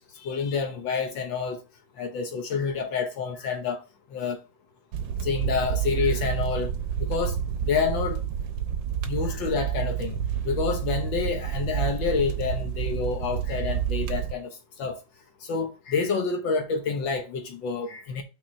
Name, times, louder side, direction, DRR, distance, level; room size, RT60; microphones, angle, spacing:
voice 1, 0.2-1.6 2.0-3.8 4.1-4.4 5.2-6.7 7.0-7.4 7.6-8.2 9.1-10.2 10.4-15.0 15.5-18.2, left 5 dB, 80° left, 1.8 m, -28 dB
sound 1, 4.9-14.3, right 9 dB, 80° right, 1.4 m, -29 dB
6.0 x 4.4 x 5.2 m
omnidirectional pair, 2.0 m